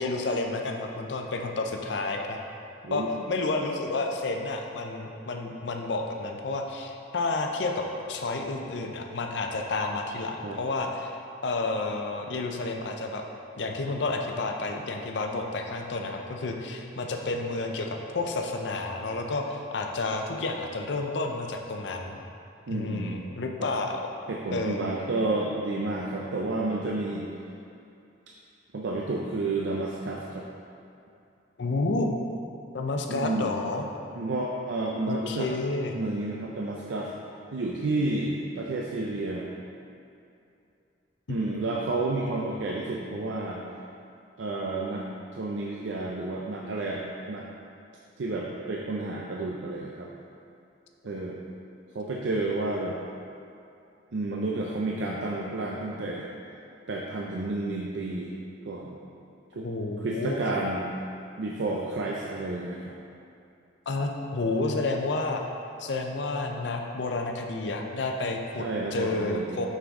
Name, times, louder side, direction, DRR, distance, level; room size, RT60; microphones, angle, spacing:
voice 1, 0.0-2.4 2.9-11.1 11.4-13.2 13.6-22.2 22.7-24.0 24.5-25.0 31.6-32.1 32.7-33.9 35.1-36.0 41.3-41.4 59.6-60.4 63.9-65.4 65.8-69.7, left 3 dB, 70° left, 3 dB, 0.6 m, -30 dB
voice 2, 22.7-23.2 23.6-23.7 24.3-27.3 28.7-30.5 33.1-33.6 34.2-35.5 35.9-37.1 37.5-39.5 41.3-43.6 44.4-45.1 45.4-47.4 48.2-50.1 51.0-51.4 51.9-53.0 54.1-56.3 56.9-58.4 58.7-59.0 59.5-59.7 60.0-60.8 61.4-62.9 68.6-69.7, right 2 dB, 75° right, -2 dB, 0.5 m, -30 dB
5.9 x 5.6 x 3.6 m, 2.7 s
head